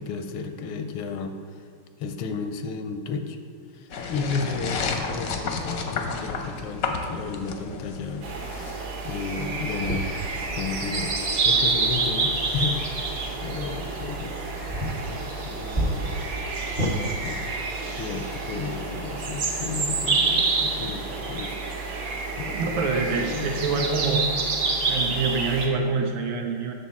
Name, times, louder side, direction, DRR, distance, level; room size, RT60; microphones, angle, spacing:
voice 1, 0.0-1.6 2.0-3.4 3.7-10.1 10.6-13.1 13.4-14.4 15.0-16.5 17.2-17.3 17.9-23.9, left 4 dB, 85° left, 7 dB, 1.4 m, -33 dB
sound 1, 3.9-8.7, left 4 dB, 65° left, 0.9 m, -31 dB
sound 2, 8.2-25.7, right 3 dB, 50° right, 1.1 m, -28 dB
sound 3, 9.8-16.9, right 1 dB, 35° right, 0.6 m, -33 dB
voice 2, 22.5-24.3 24.9-26.7, right 4 dB, 75° right, 3 dB, 1.4 m, -26 dB
7.4 x 6.5 x 4.1 m, 2.2 s
omnidirectional pair, 2.3 m